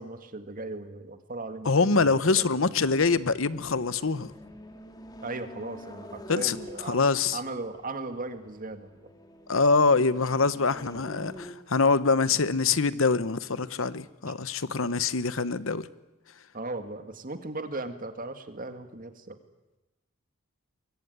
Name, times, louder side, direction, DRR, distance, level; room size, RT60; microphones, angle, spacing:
voice 1, 0.0-2.4 5.2-7.0 7.3-9.1 16.5-19.4, right 2 dB, 40° right, 2.1 m, -37 dB
voice 2, 1.6-4.3 6.3-6.6 6.9-7.4 9.5-15.9, left 4 dB, 65° left, 1.0 m, -24 dB
sound 1, 2.8-11.5, equal, 20° left, 2.3 m, -47 dB
23.5 x 23.0 x 9.6 m
head